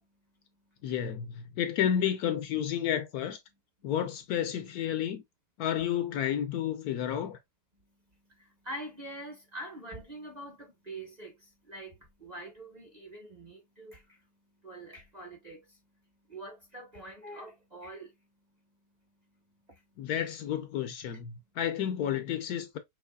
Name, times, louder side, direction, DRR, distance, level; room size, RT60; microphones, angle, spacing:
voice 1, 0.8-3.4 3.8-5.2 5.6-7.4 20.0-22.8, left 10 dB, 70° left, 1.0 m, -31 dB
voice 2, 8.3-14.2 14.6-15.8 16.3-18.1 19.7-19.8, right 1 dB, 30° right, 0.9 m, -45 dB
5.6 x 3.0 x 2.2 m
omnidirectional pair, 1.8 m